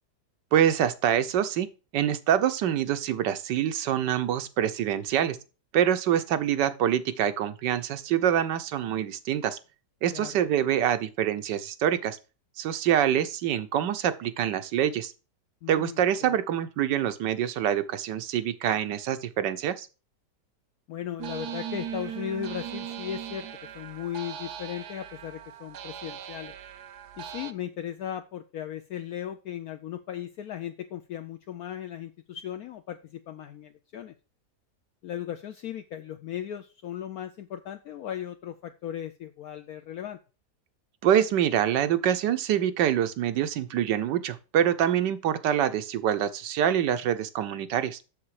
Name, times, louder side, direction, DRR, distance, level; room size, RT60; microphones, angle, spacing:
voice 1, 0.5-1.7 1.9-5.4 5.7-9.6 10.0-12.2 12.6-15.1 15.7-19.9 41.0-48.0, right 10 dB, 90° right, 1.4 m, -25 dB
voice 2, 15.6-16.4 20.9-26.5 27.2-34.1 35.0-40.2, left 10 dB, 70° left, 1.0 m, -37 dB
sound 1, 21.2-27.5, right 9 dB, 70° right, 1.2 m, -39 dB
7.1 x 6.7 x 4.8 m
omnidirectional pair, 1.8 m